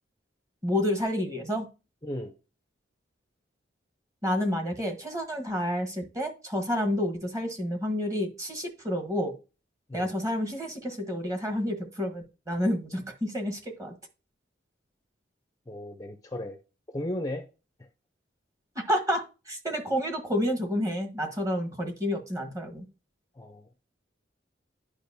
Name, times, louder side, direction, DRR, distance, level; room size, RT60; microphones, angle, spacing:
voice 1, 0.6-1.7 4.2-9.3 9.9-13.9 18.7-22.8, equal, 20° right, 1.2 m, -29 dB
voice 2, 2.0-2.4 9.9-10.1 15.7-16.6 16.9-17.5 23.3-23.8, left 1 dB, 20° left, 0.5 m, -35 dB
10.5 x 4.9 x 2.7 m
head